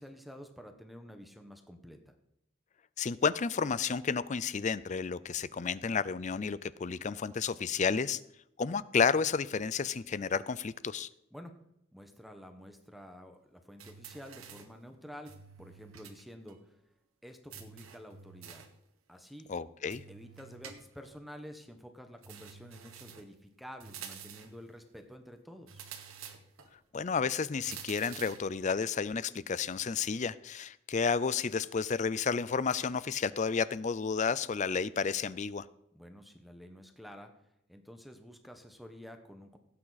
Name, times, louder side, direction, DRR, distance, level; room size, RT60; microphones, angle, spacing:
voice 1, 0.0-2.1 11.3-11.6 11.9-15.3 15.6-16.8 17.2-18.6 19.1-19.5 20.1-25.8 35.9-37.3 37.7-39.6, equal, ahead, 6 dB, 1.1 m, -50 dB
voice 2, 3.0-8.2 8.6-11.1 19.5-20.0 26.9-35.7, left 5 dB, 35° left, 18 dB, 0.4 m, -31 dB
sound 1, 13.8-14.8 15.3-16.2 16.5-16.6 17.5-18.8 19.9-21.2 22.2-23.3 23.8-24.6 25.7-26.7 27.6-28.5, right 7 dB, 85° right, 1.5 m, -49 dB
17.0 x 8.7 x 4.1 m, 0.80 s
head